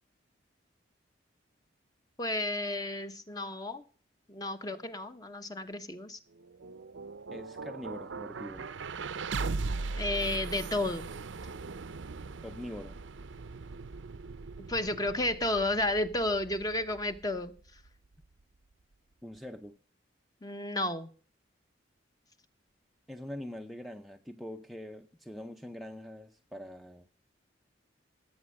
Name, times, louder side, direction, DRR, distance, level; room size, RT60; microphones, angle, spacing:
voice 1, 2.2-3.8 4.3-6.2 10.0-11.1 14.7-17.5 20.4-21.1, left 1 dB, 20° left, 0.9 m, -32 dB
sound 1, 6.3-18.4, right 4 dB, 75° right, 0.6 m, -39 dB
voice 2, 7.3-8.7 12.4-13.0 19.2-19.8 23.1-27.1, left 1 dB, ahead, 0.5 m, -43 dB
16.5 x 8.6 x 6.3 m
head